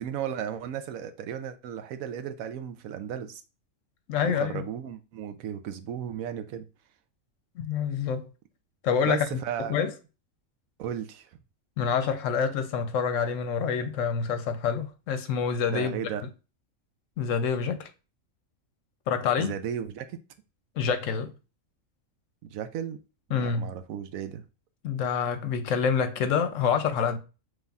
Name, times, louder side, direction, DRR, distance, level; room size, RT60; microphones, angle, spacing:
voice 1, 0.0-3.4 4.2-6.7 9.0-9.8 10.8-11.3 15.7-16.2 19.4-20.2 22.4-23.0 23.3-24.4, right 9 dB, 85° right, 1.0 m, -35 dB
voice 2, 4.1-4.6 7.6-8.3 8.8-9.3 9.7-9.9 11.8-16.0 17.2-17.9 19.1-19.5 20.8-21.3 23.3-23.7 24.8-27.2, left 6 dB, 70° left, 0.9 m, -27 dB
5.3 x 3.3 x 2.3 m
omnidirectional pair, 1.4 m